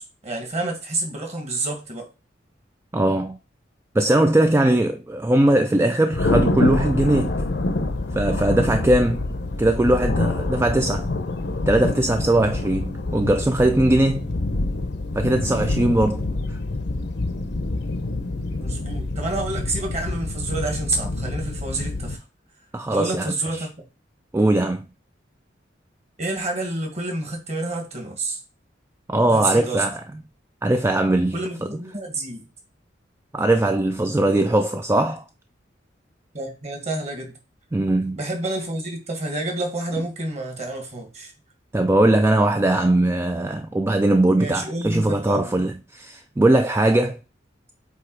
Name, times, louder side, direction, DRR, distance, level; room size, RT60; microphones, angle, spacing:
voice 1, 0.0-2.1 8.5-8.8 18.6-22.3 22.9-23.7 26.2-28.4 29.3-29.9 31.3-32.5 36.3-37.4 38.1-41.3 44.3-45.5, right 2 dB, 35° right, 1.9 m, -29 dB
voice 2, 2.9-3.4 3.9-7.3 8.1-9.3 9.6-11.1 11.7-14.3 15.1-16.2 16.5-16.6 22.7-23.3 24.3-24.8 29.1-30.0 30.6-31.3 33.3-35.2 37.7-38.2 41.7-47.2, right 1 dB, 15° right, 0.4 m, -20 dB
Thunder, 6.1-22.1, left 2 dB, 65° left, 0.8 m, -26 dB
8.2 x 3.0 x 4.6 m
head